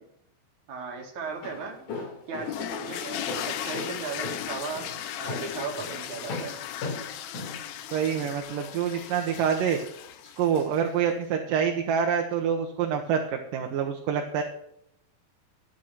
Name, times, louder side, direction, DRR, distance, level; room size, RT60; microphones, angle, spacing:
voice 1, 0.7-1.8 2.3-4.9 5.2-6.5, right 5 dB, 55° right, 2 dB, 3.1 m, -36 dB
Walk footsteps, 1.2-8.4, left 3 dB, 55° left, 4.2 m, -38 dB
sound 1, 2.4-10.9, left 10 dB, 85° left, 1.6 m, -37 dB
voice 2, 7.9-9.8 10.4-14.4, right 7 dB, 70° right, 3 dB, 2.6 m, -26 dB
12.5 x 8.9 x 6.1 m, 0.74 s
omnidirectional pair, 4.4 m